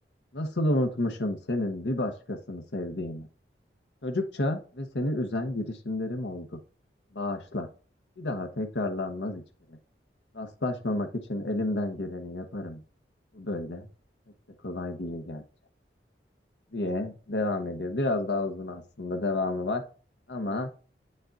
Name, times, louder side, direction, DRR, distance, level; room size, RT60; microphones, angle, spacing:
voice 1, 0.3-3.3 4.0-6.6 7.1-7.7 8.2-9.4 9.7-9.8 10.3-12.8 13.3-13.9 14.6-15.4 16.7-19.8 20.3-20.7, left 2 dB, 85° left, 5 dB, 1.0 m, -30 dB
8.2 x 6.4 x 2.5 m, 0.38 s
head